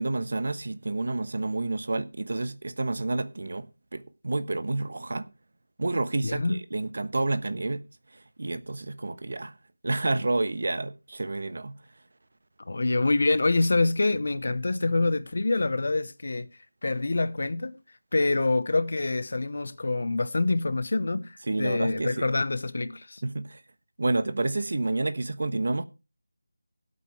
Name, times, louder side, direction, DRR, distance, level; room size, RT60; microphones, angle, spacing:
voice 1, 0.0-3.7 3.9-5.3 5.8-7.8 8.4-9.5 9.8-11.7 21.5-22.3 23.2-23.6 24.0-25.8, right 2 dB, 55° right, 1.1 m, -29 dB
voice 2, 6.2-6.6 12.7-16.5 16.8-17.7 18.1-23.2, left 2 dB, 50° left, 0.8 m, -26 dB
19.0 x 8.4 x 3.2 m
figure-of-eight pair, 175°, 0 cm